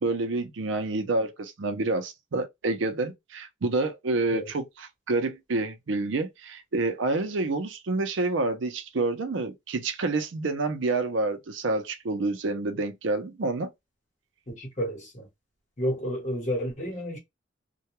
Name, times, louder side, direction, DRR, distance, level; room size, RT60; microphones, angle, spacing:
voice 1, 0.0-13.7, right 3 dB, 70° right, 0.5 m, -28 dB
voice 2, 14.5-15.3 15.8-17.2, equal, 35° left, 1.1 m, -31 dB
2.2 x 2.2 x 2.9 m
head